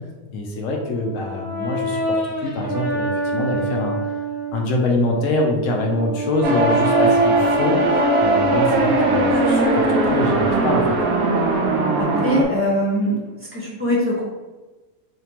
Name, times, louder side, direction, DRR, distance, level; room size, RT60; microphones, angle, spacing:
voice 1, 0.3-4.0 4.5-11.0, left 2 dB, 70° left, 0 dB, 0.8 m, -24 dB
Brass instrument, 0.7-4.6 5.2-9.3, right 1 dB, 35° left, 1.0 m, -28 dB
sound 1, 6.4-12.4, right 2 dB, 80° right, 0.5 m, -18 dB
voice 2, 12.0-13.2 13.5-14.2, equal, 10° right, -7 dB, 0.6 m, -22 dB
3.5 x 2.8 x 2.8 m, 1.2 s
omnidirectional pair, 1.7 m